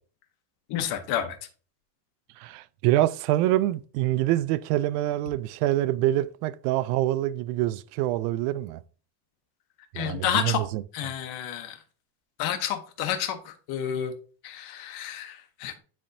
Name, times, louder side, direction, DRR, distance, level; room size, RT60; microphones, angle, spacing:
voice 1, 0.7-1.4 9.9-10.7 10.9-11.8 12.4-14.1 14.4-15.8, left 9 dB, 55° left, 1.0 m, -30 dB
voice 2, 2.4-8.8 9.9-10.8, right 14 dB, 90° right, 0.5 m, -25 dB
10.0 x 3.5 x 2.7 m
cardioid pair, 155°, 44 cm